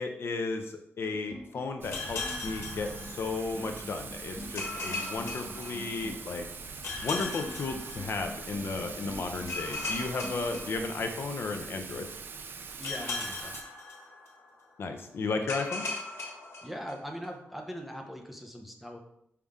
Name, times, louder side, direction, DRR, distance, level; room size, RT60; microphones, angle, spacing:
voice 1, 0.0-6.5 7.0-12.1 14.8-15.8, left 3 dB, 60° left, 5 dB, 0.7 m, -34 dB
sound 1, 1.1-10.7, left 1 dB, 25° left, 1.3 m, -45 dB
Thunder / Rain, 1.8-13.6, right 5 dB, 50° right, 0.5 m, -43 dB
sound 2, 1.9-3.7 4.6-6.3 6.8-8.6 9.5-11.5 12.8-14.6 15.5-17.3, left 3 dB, 80° left, 1.5 m, -38 dB
voice 2, 12.8-13.6 16.6-19.0, equal, ahead, 1 dB, 0.8 m, -41 dB
5.7 x 5.0 x 3.6 m, 0.75 s
wide cardioid pair, 165°, 5 cm